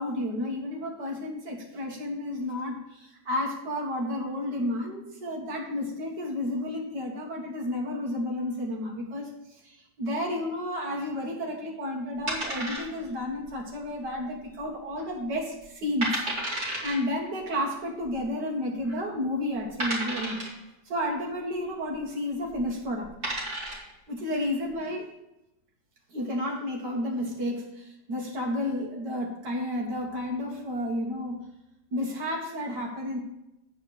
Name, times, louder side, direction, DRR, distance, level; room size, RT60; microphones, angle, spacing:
voice 1, 0.0-16.2 16.8-20.5 20.9-23.1 24.1-25.1 26.1-31.4 31.9-33.2, left 1 dB, 60° right, -1 dB, 2.2 m, -31 dB
sound 1, 12.3-13.2 13.5-13.6 14.2-14.6 15.0-15.1 15.7-15.8 16.0-17.0 18.1-18.2 18.8-18.9 19.8-20.6 22.5-22.6 23.0-23.9, right 1 dB, 35° right, 2.6 m, -32 dB
8.8 x 4.7 x 6.5 m, 0.90 s
omnidirectional pair, 2.1 m